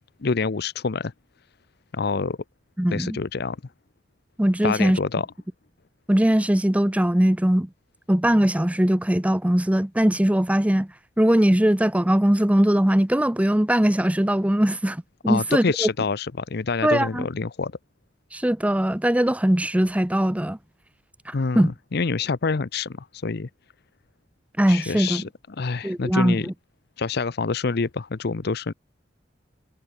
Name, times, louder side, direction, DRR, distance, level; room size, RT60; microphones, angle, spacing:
voice 1, 0.2-1.1 1.9-2.4 2.9-3.6 4.6-5.3 15.3-17.7 21.3-23.5 24.7-25.3 25.6-26.5 27.0-28.7, left 4 dB, 60° left, 0.7 m, -26 dB
voice 2, 2.8-3.2 4.4-5.0 6.1-7.7 8.1-10.9 11.2-15.9 16.8-17.3 18.3-20.6 21.3-21.7 24.6-25.2 25.8-26.5, right 1 dB, 10° right, 0.6 m, -20 dB
head